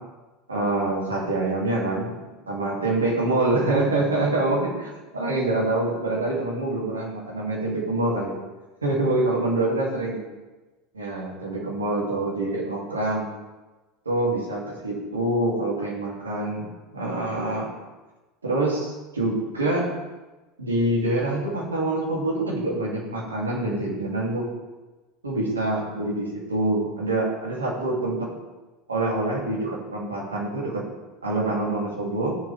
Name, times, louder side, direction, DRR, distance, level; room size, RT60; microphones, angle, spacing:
voice 1, 0.5-8.3 8.8-10.2 10.9-13.3 14.0-16.7 16.9-17.7 18.4-19.9 20.6-24.5 25.2-28.3 28.9-30.8 31.2-32.4, right 2 dB, 80° right, -4 dB, 3.3 m, -25 dB
15.5 x 7.3 x 3.7 m, 1.2 s
figure-of-eight pair, 75°, 0 cm